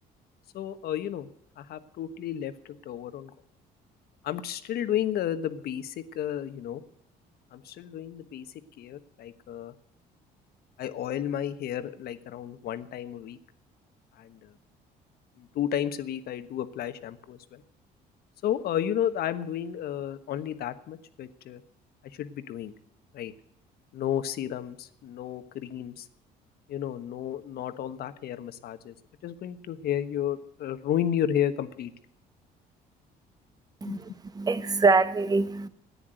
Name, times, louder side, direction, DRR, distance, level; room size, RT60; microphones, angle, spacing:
voice 1, 0.5-1.3 1.6-2.5 2.8-3.3 4.2-6.8 7.5-8.5 8.8-9.7 10.8-13.4 14.2-14.5 15.4-17.6 18.4-21.6 22.2-22.7 23.1-23.3 23.9-26.0 26.7-28.9 29.2-31.9 33.8-34.0, left 10 dB, 65° left, 1.3 m, -32 dB
voice 2, 34.3-35.7, right 4 dB, 25° right, 1.0 m, -24 dB
14.0 x 9.9 x 7.7 m
cardioid pair, 110°, 17 cm